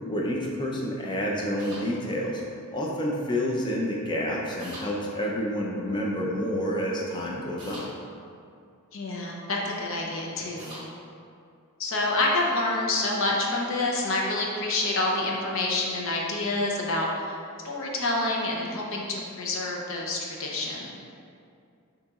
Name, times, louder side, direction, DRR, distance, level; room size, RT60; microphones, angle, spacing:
voice 1, 0.1-2.4 2.7-7.8, equal, 20° left, -3 dB, 0.5 m, -29 dB
sound 1, 1.6-1.8 4.6-4.9 7.6-7.9 10.6-10.8, right 1 dB, 20° right, 1.0 m, -42 dB
voice 2, 8.9-10.8 11.8-17.4 17.6-20.9, left 2 dB, 60° left, -2 dB, 0.7 m, -28 dB
6.6 x 2.9 x 2.4 m, 2.4 s
head